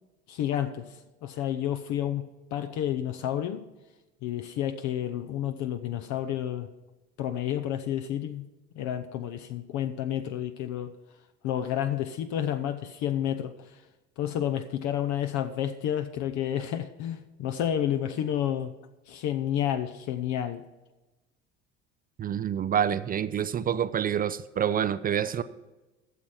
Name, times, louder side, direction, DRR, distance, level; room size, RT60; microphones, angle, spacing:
voice 1, 0.3-3.6 4.2-6.7 7.2-8.4 8.8-10.9 11.4-13.8 14.2-18.7 19.1-20.6, left 10 dB, 50° left, 8 dB, 0.7 m, -30 dB
voice 2, 22.2-25.4, right 9 dB, 25° right, 15 dB, 0.4 m, -27 dB
12.0 x 7.5 x 5.7 m, 1.1 s
figure-of-eight pair, 60°, 37 cm